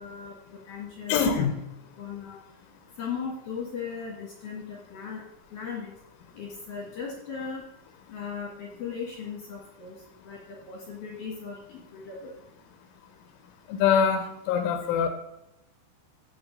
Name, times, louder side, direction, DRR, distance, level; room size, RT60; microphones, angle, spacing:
voice 1, 0.0-1.4 2.0-2.4 3.0-5.2 5.5-5.9 6.3-7.7 8.1-10.0 10.2-12.3, left 6 dB, 60° left, -3 dB, 2.4 m, -37 dB
voice 2, 1.1-1.5 13.7-15.1, left 7 dB, 85° left, 5 dB, 3.2 m, -24 dB
15.0 x 6.3 x 2.6 m, 0.88 s
omnidirectional pair, 5.7 m